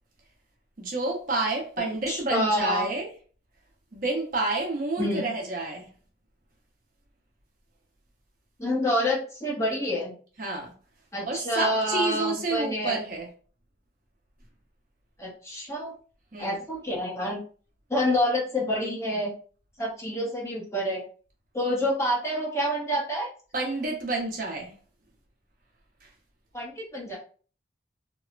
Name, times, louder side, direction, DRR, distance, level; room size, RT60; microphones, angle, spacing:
voice 1, 0.8-3.1 3.9-5.9 10.4-10.7 11.2-13.3 16.3-16.6 23.5-24.8 26.0-26.1, right 2 dB, 45° right, 0.7 m, -29 dB
voice 2, 2.1-2.9 5.0-5.2 8.6-10.1 11.1-13.0 15.2-15.9 16.4-17.4 17.9-19.3 19.8-21.0 21.5-23.3 26.5-27.2, left 1 dB, 15° left, 0.6 m, -27 dB
2.9 x 2.0 x 2.4 m
head